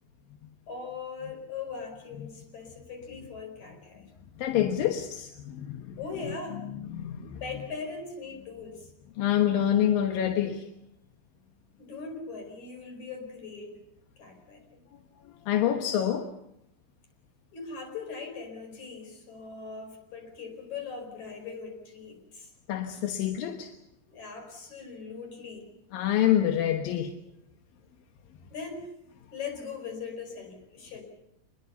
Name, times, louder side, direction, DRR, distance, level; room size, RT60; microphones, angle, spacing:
voice 1, 0.7-4.1 6.0-6.6 7.4-8.9 11.8-13.7 14.2-14.8 17.5-22.5 24.1-25.7 28.4-28.9 29.3-31.0, left 5 dB, 55° left, 6.2 m, -40 dB
voice 2, 4.4-6.0 6.7-7.4 9.2-10.6 15.5-16.3 22.7-23.7 25.9-27.1, left 11 dB, 85° left, 3.0 m, -27 dB
26.5 x 21.0 x 7.0 m
omnidirectional pair, 4.0 m